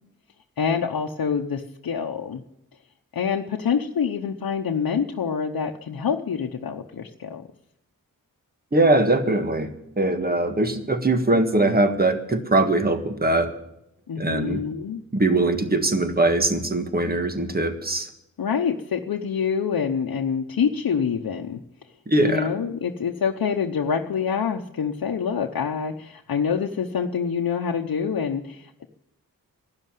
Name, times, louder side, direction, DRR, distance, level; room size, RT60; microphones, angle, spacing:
voice 1, 0.6-2.4 3.1-7.5 14.1-15.0 18.4-21.6 22.2-28.9, left 6 dB, 80° left, 1 dB, 1.0 m, -26 dB
voice 2, 8.7-9.7 10.0-13.5 14.2-14.6 15.1-18.1 22.1-22.5, right 2 dB, 25° right, 7 dB, 1.7 m, -21 dB
12.5 x 10.0 x 9.3 m, 0.80 s
wide cardioid pair, 90°, 35 cm